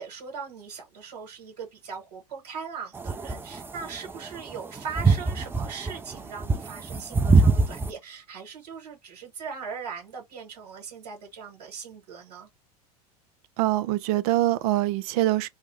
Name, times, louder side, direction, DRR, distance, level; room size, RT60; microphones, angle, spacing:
voice 1, 0.0-12.5, right 6 dB, 80° right, 1.3 m, -39 dB
sound 1, 3.0-7.9, right 3 dB, 10° right, 0.4 m, -23 dB
voice 2, 13.6-15.5, right 15 dB, 65° right, 0.5 m, -24 dB
3.4 x 2.1 x 3.2 m
hypercardioid pair, 100°, 20 cm